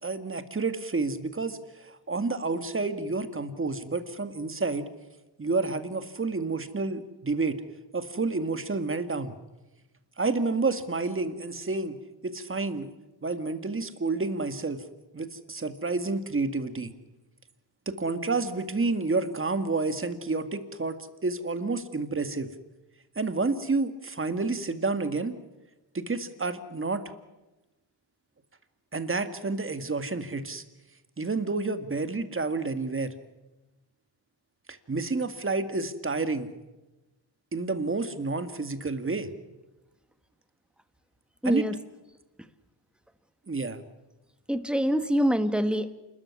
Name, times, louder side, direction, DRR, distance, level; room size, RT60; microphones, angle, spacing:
voice 1, 0.0-4.9 5.4-7.6 7.9-9.3 10.2-12.0 12.2-12.9 13.2-14.9 15.1-16.9 17.9-22.5 23.2-25.3 25.9-27.0 28.9-30.6 31.2-33.1 34.7-36.5 37.5-39.3 41.4-41.7 43.5-43.8, right 3 dB, 25° right, 9 dB, 2.0 m, -29 dB
voice 2, 41.4-41.7 44.5-45.9, equal, ahead, 10 dB, 1.6 m, -25 dB
28.0 x 13.5 x 9.8 m, 1.1 s
cardioid pair, 85°, 46 cm